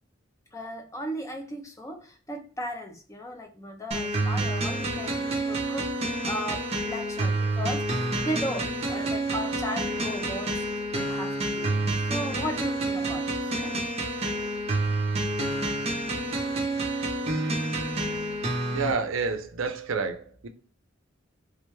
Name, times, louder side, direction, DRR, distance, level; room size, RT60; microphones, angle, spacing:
voice 1, 0.5-13.8, equal, 15° left, 0.6 m, -36 dB
sound 1, 3.9-18.9, right 2 dB, 30° right, 0.6 m, -28 dB
voice 2, 18.7-20.5, right 4 dB, 80° right, 0.5 m, -29 dB
3.4 x 2.2 x 3.1 m
head